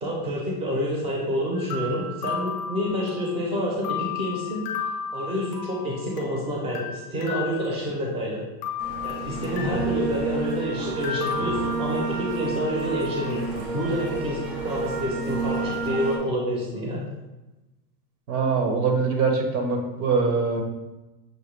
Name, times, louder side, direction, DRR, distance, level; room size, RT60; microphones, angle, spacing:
voice 1, 0.0-4.6 5.1-8.4 9.0-17.0, equal, 10° right, -3 dB, 0.6 m, -28 dB
sound 1, 1.5-3.4 3.8-6.4 6.7-8.2 8.6-10.0 11.0-12.5, left 6 dB, 30° left, 0.4 m, -34 dB
sound 2, 8.8-16.2, right 4 dB, 80° right, 1.3 m, -30 dB
voice 2, 18.3-20.6, right 4 dB, 60° right, 3 dB, 1.0 m, -23 dB
6.3 x 2.2 x 3.3 m, 1.0 s
supercardioid pair, 145°, 49 cm